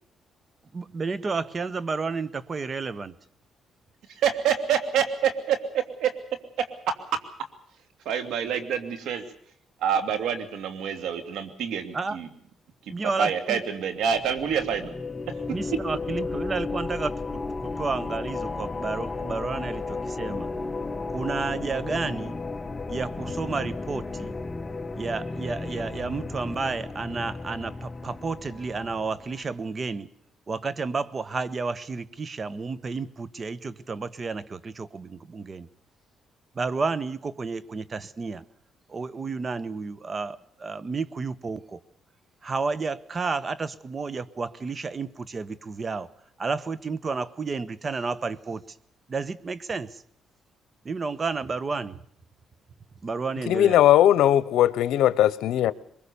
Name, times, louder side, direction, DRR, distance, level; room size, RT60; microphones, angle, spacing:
voice 1, 0.7-3.1 11.9-12.2 12.9-13.6 15.5-20.5 21.1-22.3 22.9-24.4 25.0-30.1 30.5-35.7 36.5-38.4 38.9-41.8 42.4-46.1 46.4-48.6 49.1-50.0 50.8-52.0 53.0-53.8, right 4 dB, 35° right, 1.2 m, -31 dB
voice 2, 4.1-6.1 6.6-7.2 8.0-9.2 9.8-12.3 12.9-14.9 15.3-15.4, right 8 dB, 80° right, 2.7 m, -27 dB
sound 1, 14.0-29.4, left 3 dB, 25° left, 0.9 m, -34 dB
voice 3, 53.5-55.7, left 12 dB, 85° left, 0.9 m, -19 dB
23.0 x 22.0 x 7.0 m
cardioid pair, 90°, 0 cm